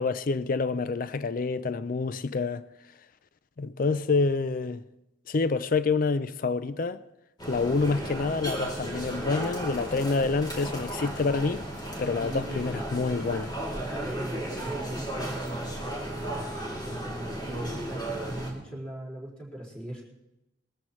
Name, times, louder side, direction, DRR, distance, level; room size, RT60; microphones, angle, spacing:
voice 1, 0.0-2.7 3.6-4.8 5.3-7.0 7.5-11.6 12.0-13.5, left 4 dB, 45° left, 0.4 m, -27 dB
sound 1, 7.4-18.5, right 1 dB, 20° left, 2.9 m, -35 dB
voice 2, 12.2-12.6 13.7-16.6 16.8-20.0, right 1 dB, 5° left, 4.8 m, -39 dB
21.0 x 13.5 x 3.1 m
head